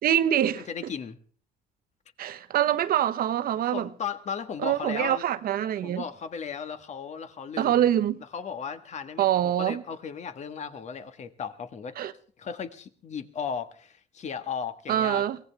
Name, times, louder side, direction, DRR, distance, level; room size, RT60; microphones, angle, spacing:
voice 1, 0.0-0.7 2.2-3.9 4.6-6.0 7.6-8.2 9.2-9.8 12.0-12.1 14.9-15.4, right 11 dB, 60° right, 1.1 m, -25 dB
voice 2, 0.5-1.2 3.7-5.2 5.8-7.8 8.3-12.0 12.4-15.2, left 6 dB, 45° left, 1.5 m, -36 dB
23.5 x 17.0 x 3.4 m
cardioid pair, 110°, 17 cm